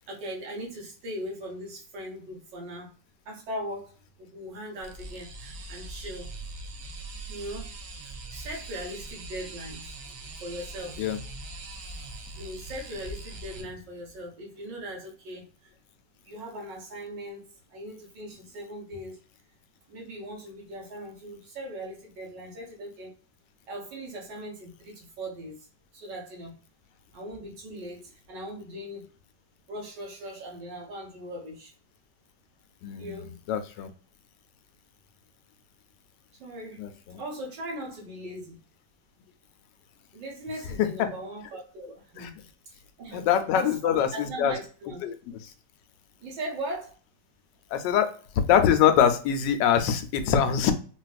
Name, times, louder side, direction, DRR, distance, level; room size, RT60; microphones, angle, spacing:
voice 1, 0.1-2.9 3.2-3.9 4.2-6.3 7.3-7.7 8.3-10.0 10.4-11.0 12.3-15.7 16.2-17.4 17.7-19.2 19.9-23.1 23.7-25.7 25.9-26.6 27.1-29.0 29.7-31.7 33.0-33.3 36.4-36.8 37.1-38.6 40.1-42.3 42.7-43.3 43.5-45.0 46.2-46.9, right 1 dB, 80° right, -1 dB, 1.9 m, -39 dB
sound 1, 4.8-13.6, right 2 dB, 60° right, 0.9 m, -41 dB
voice 2, 32.8-33.9 36.8-37.2 40.8-41.1 42.2-42.3 43.1-44.6 45.0-45.1 47.7-50.7, left 9 dB, 80° left, 8 dB, 1.2 m, -24 dB
4.0 x 2.4 x 2.3 m, 0.40 s
omnidirectional pair, 1.9 m